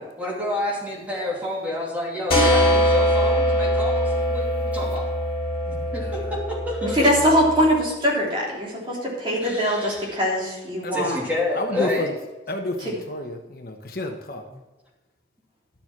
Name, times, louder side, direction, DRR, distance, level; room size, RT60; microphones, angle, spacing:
voice 1, 0.0-5.1 5.7-7.1 9.3-10.2 10.9-12.1, left 1 dB, 10° right, -4 dB, 2.8 m, -29 dB
sound 1, 2.3-7.8, equal, 30° left, 4.2 m, -22 dB
voice 2, 5.8-6.4 7.2-7.3 10.8-11.2 11.5-12.1 12.5-14.4, left 2 dB, 50° left, 4 dB, 1.0 m, -31 dB
voice 3, 6.8-11.2, equal, 25° right, -4 dB, 3.4 m, -22 dB
11.5 x 7.0 x 6.0 m, 1.1 s
head